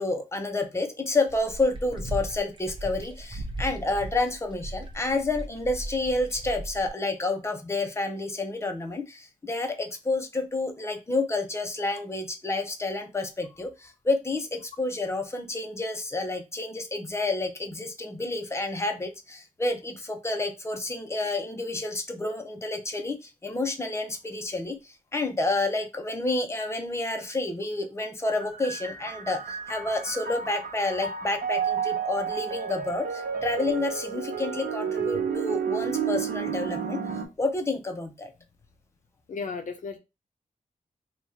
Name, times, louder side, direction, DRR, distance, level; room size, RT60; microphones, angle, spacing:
voice 1, 0.0-37.0 37.4-38.3, left 2 dB, 20° left, 5 dB, 0.7 m, -29 dB
sound 1, 1.3-6.9, right 1 dB, 35° right, 0.8 m, -37 dB
sound 2, 28.4-37.2, right 7 dB, 80° right, 0.9 m, -31 dB
voice 2, 39.3-40.0, left 4 dB, 60° left, 6 dB, 0.6 m, -34 dB
3.0 x 2.4 x 4.2 m, 0.25 s
wide cardioid pair, 85°, 14 cm